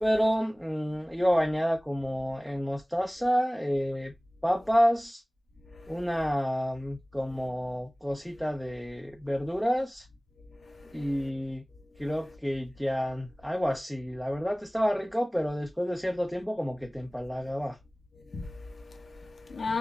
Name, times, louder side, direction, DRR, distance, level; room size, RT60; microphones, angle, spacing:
voice 1, 0.0-4.1 4.4-5.2 5.9-10.1 10.9-11.6 12.0-17.8, equal, ahead, 0.5 m, -29 dB
voice 2, 10.6-11.3 18.3-19.8, left 4 dB, 75° left, 0.8 m, -37 dB
5.6 x 2.1 x 2.3 m
wide cardioid pair, 130°, 0 cm